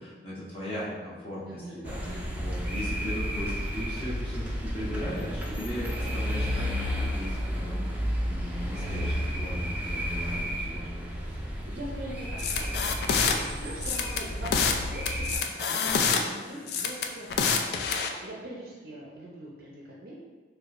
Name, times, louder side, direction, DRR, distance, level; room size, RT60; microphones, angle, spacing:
voice 1, 0.0-7.9 8.3-11.1, equal, 30° left, -8 dB, 1.0 m, -38 dB
voice 2, 1.4-2.3 11.4-15.3 15.5-20.2, right 1 dB, 60° right, -4 dB, 0.5 m, -43 dB
sound 1, 1.8-15.4, equal, 10° right, 0.4 m, -32 dB
sound 2, 12.4-13.4 13.8-14.8 15.1-16.2 16.7-18.1, left 6 dB, 60° left, 0.3 m, -26 dB
4.6 x 2.3 x 2.5 m, 1.3 s
head